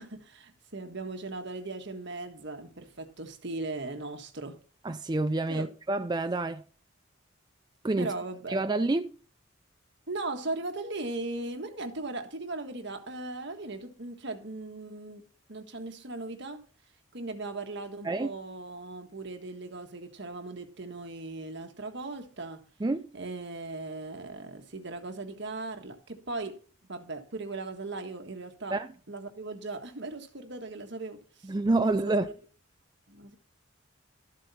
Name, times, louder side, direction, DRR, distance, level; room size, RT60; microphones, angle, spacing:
voice 1, 0.0-4.6 5.5-5.7 8.0-8.6 10.1-15.2 15.5-16.6 17.1-22.6 23.1-26.6 26.9-28.8 29.1-31.5 31.8-32.3 33.1-33.4, right 2 dB, 60° right, 1.6 m, -38 dB
voice 2, 4.8-6.6 7.8-8.1 8.5-9.2 18.0-18.3 22.8-23.1 28.7-28.9 31.4-32.3, right 2 dB, 20° right, 0.4 m, -28 dB
13.0 x 7.6 x 4.3 m
head